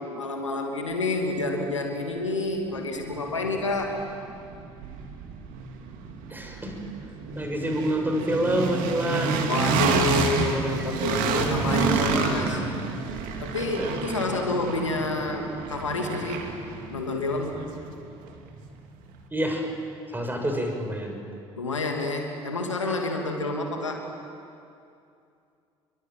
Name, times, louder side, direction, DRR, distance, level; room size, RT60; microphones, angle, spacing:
voice 1, 0.0-4.0 9.5-12.6 13.4-16.5 16.9-17.6 21.6-24.0, left 2 dB, 90° left, 2 dB, 2.8 m, -29 dB
sound 1, 2.2-2.3 2.7-18.7, right 5 dB, 65° right, 2.7 m, -30 dB
voice 2, 6.3-6.8 7.4-9.5 10.5-10.8 11.4-12.7 13.8-14.4 19.3-19.7 20.1-21.2, equal, 15° right, 2 dB, 6.6 m, -28 dB
29.0 x 23.5 x 7.8 m, 2.6 s
figure-of-eight pair, 55°, 15 cm